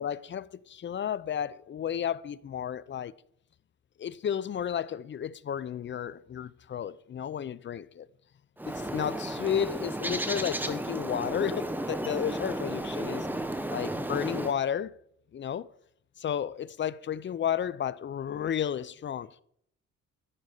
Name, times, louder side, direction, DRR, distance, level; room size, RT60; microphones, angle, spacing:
voice 1, 0.0-3.1 4.0-8.1 8.7-13.3 13.7-14.9 15.3-15.7 16.2-19.4, left 9 dB, 40° left, 0.5 m, -32 dB
Bird, 8.6-14.5, right 1 dB, 5° right, 1.1 m, -33 dB
15.5 x 5.2 x 6.5 m
cardioid pair, 90°, 30 cm